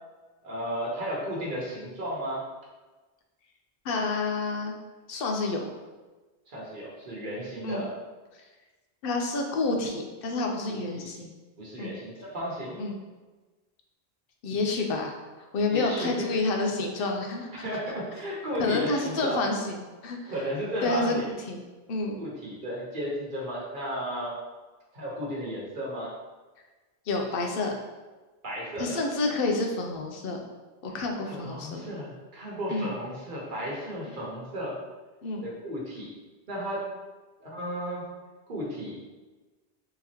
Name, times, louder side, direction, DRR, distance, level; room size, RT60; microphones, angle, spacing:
voice 1, 0.4-2.4 6.5-7.9 10.7-11.1 11.6-12.8 15.7-16.4 17.5-19.5 20.2-21.3 22.2-24.3 24.9-26.1 28.4-29.0 31.3-34.8 35.4-36.1 36.5-36.8 37.4-38.1 38.5-39.0, equal, 55° right, -5 dB, 1.1 m, -34 dB
voice 2, 3.8-4.8 5.1-5.6 7.6-7.9 9.0-11.4 11.8-12.0 12.8-13.0 14.4-17.5 18.6-20.2 20.8-21.6 21.9-22.2 27.1-27.7 28.8-30.4 30.8-31.9 32.7-33.0 35.2-35.4, left 3 dB, 65° left, 2 dB, 0.7 m, -29 dB
3.8 x 3.0 x 2.8 m, 1.2 s
omnidirectional pair, 1.1 m